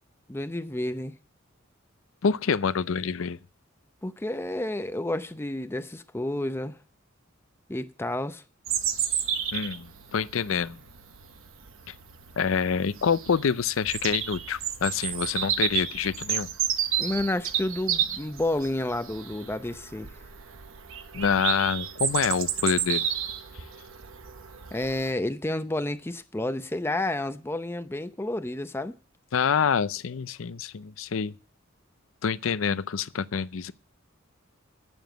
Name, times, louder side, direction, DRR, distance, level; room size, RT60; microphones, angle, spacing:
voice 1, 0.3-1.1 4.0-6.8 7.7-8.4 17.0-20.1 24.7-29.0, left 1 dB, 10° left, 0.6 m, -30 dB
voice 2, 2.2-3.4 9.5-10.8 11.9-12.0 12.4-16.5 21.1-23.1 29.3-31.3 32.2-33.7, left 6 dB, 75° left, 0.5 m, -26 dB
Bird vocalization bird call bird song, 8.7-25.1, right 9 dB, 80° right, 1.1 m, -31 dB
9.3 x 7.2 x 7.9 m
head